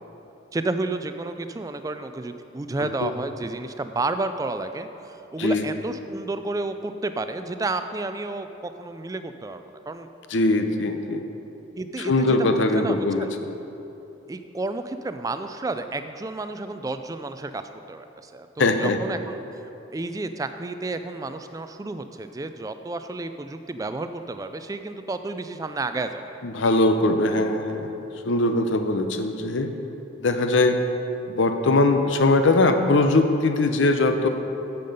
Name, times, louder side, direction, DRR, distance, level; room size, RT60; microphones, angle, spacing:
voice 1, 0.5-10.1 11.8-13.3 14.3-17.6 17.9-19.3 19.9-26.4, right 2 dB, 20° right, 9 dB, 0.3 m, -31 dB
voice 2, 10.3-11.2 12.0-13.3 18.6-19.0 26.4-27.9 28.2-29.7 30.2-30.8 31.3-34.3, left 2 dB, 75° left, 7 dB, 0.7 m, -21 dB
9.3 x 6.9 x 5.3 m, 3.0 s
head